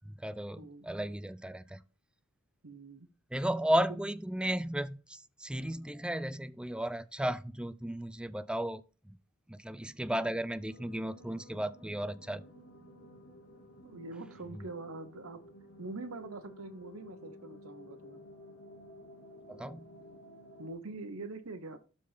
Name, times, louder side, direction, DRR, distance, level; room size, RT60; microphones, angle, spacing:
voice 1, 0.2-1.8 3.3-8.8 9.1-9.2 9.5-12.4 19.5-19.9, equal, 5° right, 0.4 m, -34 dB
voice 2, 2.6-3.1 13.8-15.4 15.8-18.2 20.6-21.8, right 3 dB, 75° right, 1.0 m, -44 dB
sound 1, 10.7-20.7, left 1 dB, 60° left, 2.2 m, -53 dB
12.5 x 4.2 x 3.4 m
head